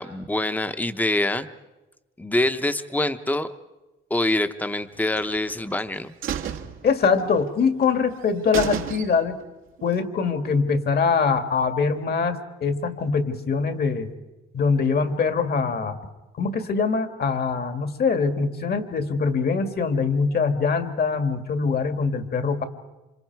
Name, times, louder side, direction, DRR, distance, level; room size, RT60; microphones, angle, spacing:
voice 1, 0.0-1.5 2.2-3.5 4.1-6.1, left 1 dB, 10° left, 10 dB, 0.9 m, -25 dB
sound 1, 5.1-5.8 6.2-7.5 7.8-7.9 8.2-8.3 8.5-9.4 9.8-9.9, right 9 dB, 90° right, 1.7 m, -32 dB
voice 2, 6.8-9.4 9.8-14.1 14.5-16.0 16.4-22.6, left 5 dB, 50° left, 8 dB, 2.0 m, -23 dB
28.0 x 26.0 x 4.7 m, 1.1 s
cardioid pair, 90°, 20 cm